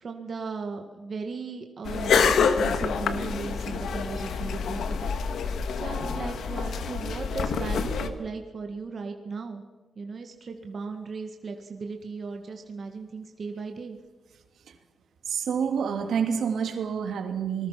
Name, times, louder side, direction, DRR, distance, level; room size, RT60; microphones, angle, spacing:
voice 1, 0.0-5.1 5.7-9.6 10.0-14.0, right 4 dB, 40° right, 4 dB, 1.8 m, -37 dB
sound 1, 1.9-8.1, left 5 dB, 80° left, 1.9 m, -27 dB
voice 2, 15.3-17.7, right 7 dB, 75° right, 6 dB, 2.7 m, -28 dB
26.5 x 20.0 x 5.9 m, 1.2 s
wide cardioid pair, 170°, 0 cm